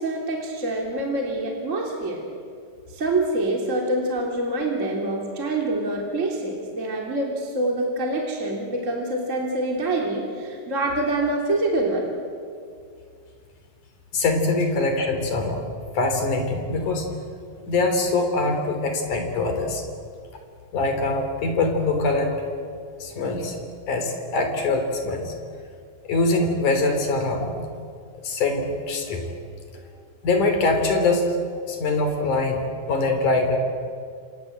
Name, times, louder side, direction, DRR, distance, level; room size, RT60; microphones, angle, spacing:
voice 1, 0.0-2.2 2.9-12.0 29.7-29.8, right 2 dB, 25° right, -1 dB, 3.2 m, -26 dB
voice 2, 14.1-15.6 15.9-17.1 17.7-19.8 20.7-22.3 23.0-23.6 23.9-25.3 26.0-27.5 28.2-29.2 30.2-31.2 31.7-33.6, left 3 dB, 70° left, 5 dB, 4.8 m, -23 dB
29.0 x 26.5 x 7.8 m, 2.2 s
omnidirectional pair, 3.7 m